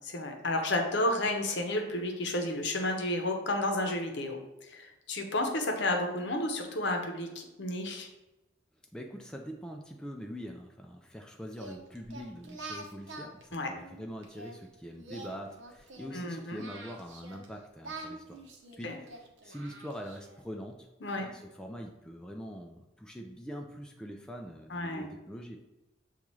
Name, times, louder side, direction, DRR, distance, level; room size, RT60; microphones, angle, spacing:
voice 1, 0.0-4.4 4.7-8.1 13.5-13.7 16.1-16.6 18.8-19.0 21.0-21.3 24.7-25.1, left 1 dB, 70° left, 3 dB, 0.7 m, -31 dB
voice 2, 8.9-18.4 18.8-19.1 19.4-20.9 21.2-25.6, equal, 5° left, 1 dB, 0.3 m, -43 dB
Singing, 11.5-14.5 15.0-17.5 17.8-20.4, right 2 dB, 80° right, 0.7 m, -46 dB
6.8 x 2.4 x 3.0 m, 0.98 s
head